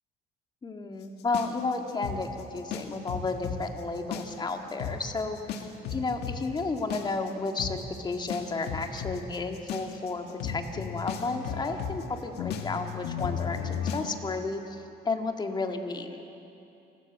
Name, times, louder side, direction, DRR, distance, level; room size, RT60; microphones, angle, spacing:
voice 1, 0.6-16.3, left 3 dB, 25° left, 4 dB, 1.9 m, -32 dB
sound 1, 1.3-3.6 4.0-4.5 4.8-5.0 5.5-14.1, left 7 dB, 80° left, 1.8 m, -34 dB
29.0 x 13.5 x 8.3 m, 2.8 s
cardioid pair, 110°, 17 cm